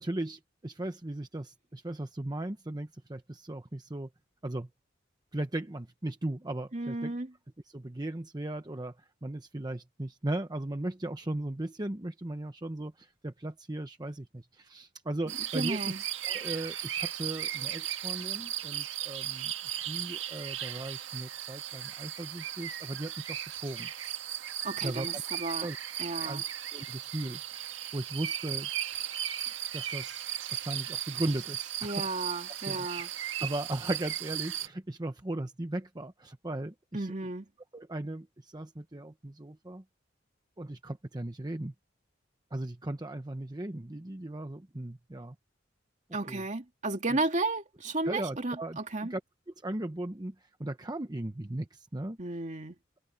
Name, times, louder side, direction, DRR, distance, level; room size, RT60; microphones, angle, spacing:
voice 1, 0.0-4.1 4.4-4.7 5.3-7.2 7.6-15.9 16.2-19.5 19.9-23.9 24.8-25.2 25.6-25.8 26.2-26.4 26.7-28.7 29.7-30.3 30.5-32.1 32.7-32.9 33.4-37.1 37.7-39.8 40.6-41.7 42.5-45.3 46.3-46.4 48.0-49.2 49.6-52.2, right 1 dB, 20° right, 0.9 m, -37 dB
voice 2, 6.7-7.3 15.5-16.0 24.6-25.7 26.0-26.4 31.8-33.1 36.9-37.5 46.1-49.1 52.2-52.8, right 2 dB, 40° right, 2.5 m, -33 dB
sound 1, 15.3-34.7, right 11 dB, 85° right, 1.7 m, -36 dB
head